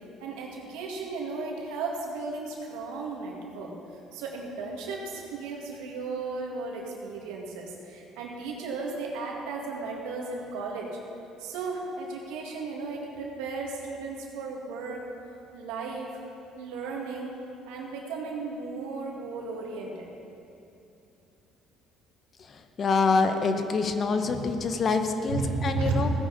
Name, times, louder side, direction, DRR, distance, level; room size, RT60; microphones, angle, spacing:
voice 1, 0.0-11.0 11.4-15.1 15.5-16.2 16.6-17.4 17.7-20.1 24.2-24.5 25.3-26.0, right 4 dB, 85° right, -1 dB, 2.0 m, -35 dB
voice 2, 22.5-26.1, left 4 dB, 45° left, 7 dB, 1.0 m, -26 dB
16.0 x 10.0 x 4.1 m, 2.7 s
supercardioid pair, 80°, 0 cm